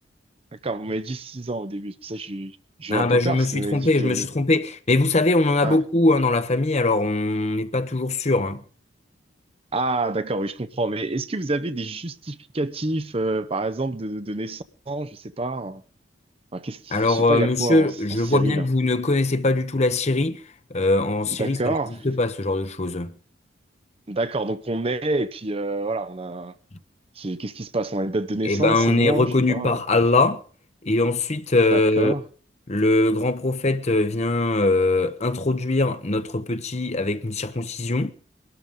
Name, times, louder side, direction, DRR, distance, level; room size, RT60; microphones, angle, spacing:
voice 1, 0.6-4.3 5.6-5.8 9.7-15.8 16.5-18.7 21.3-22.0 24.1-26.5 27.2-29.8 31.7-32.2, right 2 dB, 30° right, 0.7 m, -28 dB
voice 2, 2.9-8.6 16.9-20.4 20.7-21.6 22.0-23.1 28.4-30.4 30.8-32.1 32.7-38.1, left 2 dB, 35° left, 0.9 m, -21 dB
22.5 x 12.5 x 3.7 m
head